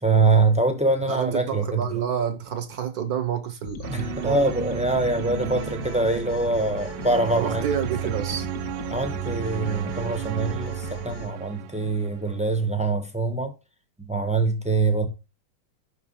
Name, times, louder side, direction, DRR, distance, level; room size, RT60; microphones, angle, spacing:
voice 1, 0.0-1.8 3.9-7.6 8.9-13.5 14.0-15.1, right 3 dB, 5° right, 0.5 m, -24 dB
voice 2, 1.1-4.5 7.4-8.5, right 8 dB, 60° right, 1.1 m, -29 dB
sound 1, 3.6-11.3, left 8 dB, 60° left, 1.1 m, -38 dB
sound 2, 3.8-12.7, right 15 dB, 75° right, 1.2 m, -34 dB
6.1 x 5.9 x 5.6 m
omnidirectional pair, 2.2 m